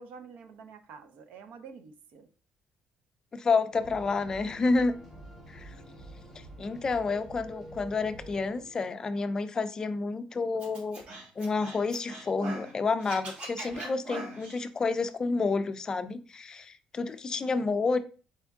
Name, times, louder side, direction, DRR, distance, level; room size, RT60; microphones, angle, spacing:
voice 1, 0.0-2.3, right 5 dB, 70° right, 9 dB, 0.6 m, -48 dB
voice 2, 3.3-4.9 5.5-5.7 6.6-11.0 11.4-18.0, left 4 dB, 25° left, 11 dB, 0.4 m, -29 dB
sound 1, 3.7-8.7, right 1 dB, 10° right, 1.6 m, -47 dB
Scratching (performance technique), 10.6-12.7 13.0-14.6, right 2 dB, 50° right, 1.3 m, -41 dB
4.3 x 3.4 x 3.5 m, 0.37 s
cardioid pair, 155°, 3 cm